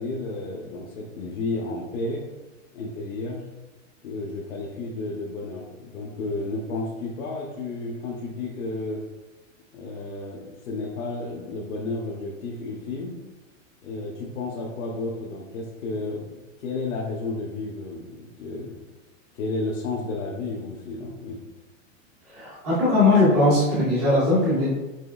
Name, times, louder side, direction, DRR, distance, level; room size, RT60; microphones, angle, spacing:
voice 1, 0.0-2.2 2.7-3.4 4.0-9.0 9.7-13.1 13.8-18.8 19.3-21.4, left 2 dB, 85° left, -2 dB, 0.9 m, -32 dB
voice 2, 22.3-24.8, left 2 dB, 10° right, -7 dB, 0.3 m, -20 dB
6.0 x 3.0 x 2.3 m, 1.1 s
supercardioid pair, 165°, 39 cm